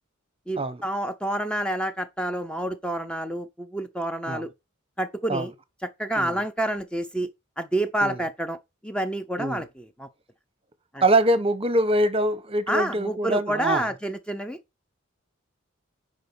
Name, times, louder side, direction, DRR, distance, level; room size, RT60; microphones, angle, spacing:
voice 1, 0.5-4.5 5.0-5.5 5.8-7.3 7.6-8.6 8.8-10.1 10.9-11.0 12.7-14.6, right 1 dB, 5° left, 0.7 m, -28 dB
voice 2, 11.0-13.9, right 1 dB, 25° right, 1.0 m, -24 dB
10.0 x 5.3 x 5.4 m
head